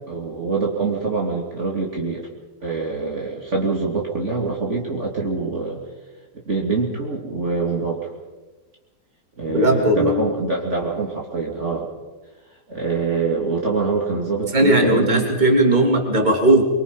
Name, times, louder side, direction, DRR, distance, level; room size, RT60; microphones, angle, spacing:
voice 1, 0.1-2.3 2.6-5.8 6.5-8.1 9.4-11.9 12.7-15.3, right 4 dB, 50° right, -2 dB, 2.9 m, -24 dB
voice 2, 9.5-10.2 14.5-16.6, right 1 dB, 30° right, 1 dB, 3.2 m, -17 dB
24.5 x 24.0 x 5.5 m, 1.2 s
omnidirectional pair, 1.7 m